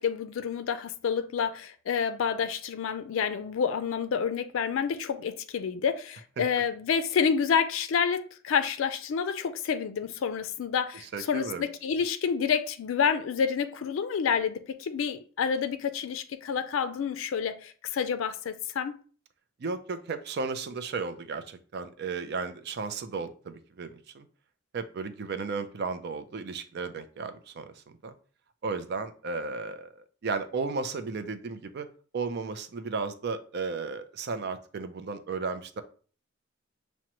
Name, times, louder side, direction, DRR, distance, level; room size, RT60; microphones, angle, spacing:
voice 1, 0.0-19.0, left 6 dB, 75° left, 0.4 m, -29 dB
voice 2, 11.1-11.6 19.6-24.3 24.7-28.1 28.6-31.9 32.1-35.8, right 4 dB, 55° right, 0.4 m, -34 dB
6.0 x 2.1 x 2.9 m
head